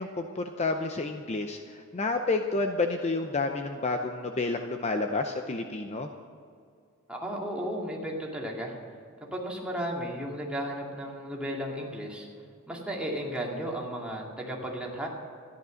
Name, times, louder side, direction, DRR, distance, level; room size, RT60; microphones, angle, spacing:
voice 1, 0.0-6.1, left 3 dB, 30° left, 5 dB, 0.6 m, -30 dB
voice 2, 7.1-8.8 9.3-12.3 12.7-15.1, equal, 5° right, -2 dB, 2.2 m, -34 dB
13.5 x 11.0 x 6.4 m, 2.3 s
head